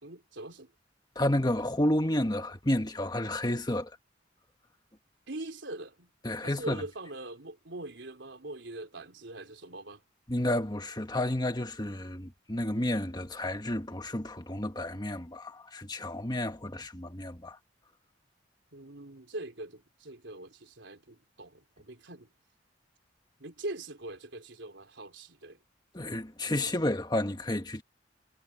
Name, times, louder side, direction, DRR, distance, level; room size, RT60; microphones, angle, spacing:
voice 1, 0.0-0.7 5.3-6.1 6.4-10.0 18.7-22.3 23.4-25.6, right 2 dB, 75° right, 3.5 m, -42 dB
voice 2, 1.1-3.9 6.2-6.8 10.3-17.6 25.9-27.8, left 1 dB, 20° left, 1.6 m, -31 dB
head